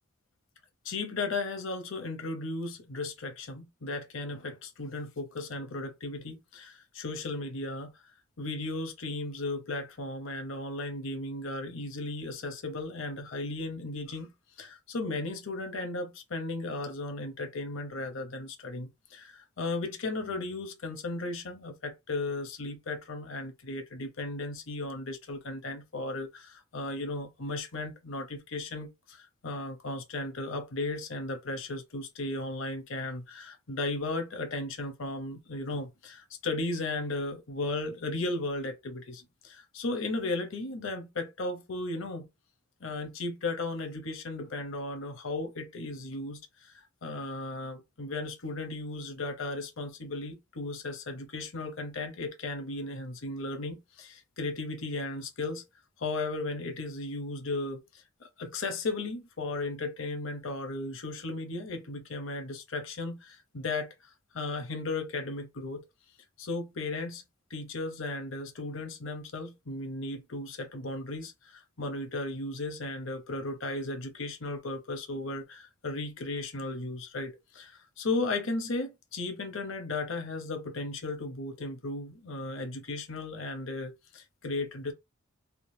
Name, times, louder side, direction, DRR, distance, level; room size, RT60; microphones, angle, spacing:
voice 1, 0.8-7.9 8.4-14.3 14.6-42.3 42.8-55.6 56.0-63.9 64.3-65.9 66.4-67.2 67.5-84.9, left 2 dB, 65° left, 0.8 m, -35 dB
3.6 x 2.2 x 2.7 m
head